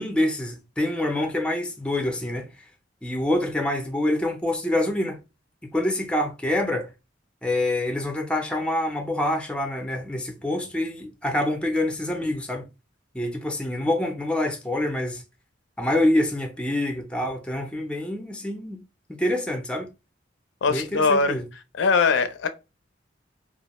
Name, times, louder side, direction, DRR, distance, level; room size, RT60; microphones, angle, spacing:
voice 1, 0.0-2.5 3.0-5.2 5.6-6.9 7.4-12.7 13.1-15.2 15.8-18.8 19.1-19.9 20.7-21.5, left 1 dB, 5° left, 0.4 m, -26 dB
voice 2, 20.6-21.4 21.8-22.5, left 4 dB, 75° left, 0.4 m, -21 dB
2.4 x 2.1 x 2.9 m
head